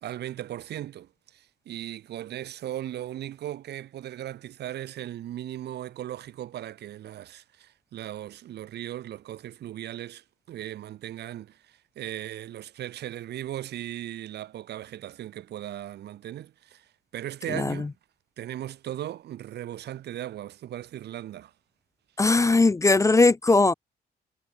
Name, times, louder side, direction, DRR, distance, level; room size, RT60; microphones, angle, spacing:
voice 1, 0.0-17.9 18.4-21.5, right 12 dB, 80° right, 4.1 m, -37 dB
voice 2, 22.2-23.7, left 3 dB, 20° left, 0.6 m, -19 dB
cardioid pair, 95°, 17 cm